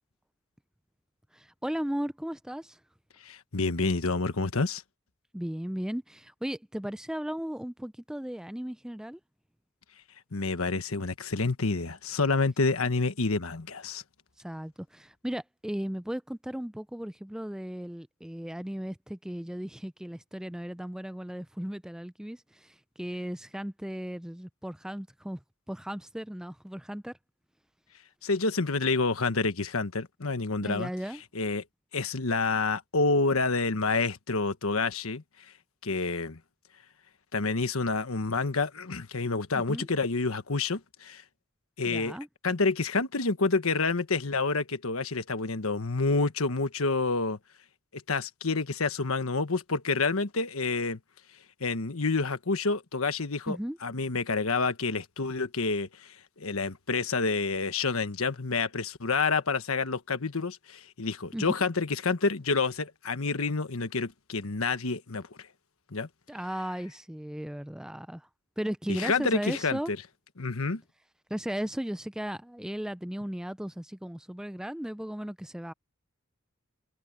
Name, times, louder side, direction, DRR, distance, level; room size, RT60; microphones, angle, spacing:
voice 1, 1.3-2.8 5.3-9.2 14.4-25.4 25.7-27.1 30.6-31.2 39.5-39.9 41.8-42.3 53.5-53.8 61.3-61.5 66.3-68.3 68.6-69.9 71.3-75.7, equal, 5° right, 0.4 m, -36 dB
voice 2, 3.2-4.8 10.3-14.0 28.2-30.9 31.3-31.6 31.9-35.2 35.8-36.4 37.3-41.2 41.8-42.2 42.4-47.4 47.9-51.0 51.6-53.6 53.8-65.5 65.9-66.1 68.9-70.0 70.4-70.8, left 3 dB, 85° left, 1.4 m, -28 dB
head